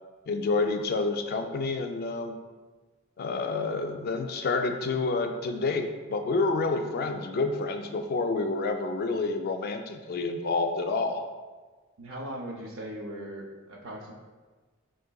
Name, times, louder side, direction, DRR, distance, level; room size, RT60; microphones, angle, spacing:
voice 1, 0.3-2.3 3.2-11.2, left 3 dB, 50° left, 6 dB, 0.3 m, -28 dB
voice 2, 12.0-14.1, right 1 dB, 85° right, -1 dB, 0.6 m, -39 dB
4.9 x 3.8 x 2.2 m, 1.4 s
head